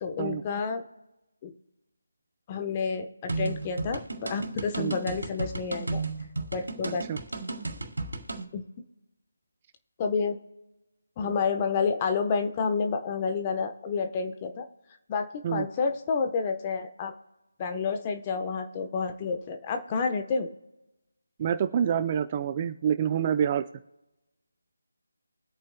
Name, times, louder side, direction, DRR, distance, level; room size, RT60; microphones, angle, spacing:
voice 1, 0.0-0.8 1.4-1.5 2.5-6.0 6.5-7.1 8.5-8.6 10.0-10.4 11.2-14.7 15.1-17.1 17.6-20.5, left 5 dB, 20° left, 6 dB, 0.9 m, -29 dB
sound 1, 3.3-8.4, right 3 dB, 70° right, 2.8 m, -34 dB
voice 2, 6.8-7.2 15.4-15.7 21.4-23.6, right 8 dB, 25° right, 11 dB, 0.5 m, -27 dB
23.0 x 8.7 x 2.2 m, 1.0 s
figure-of-eight pair, 160°, 0 cm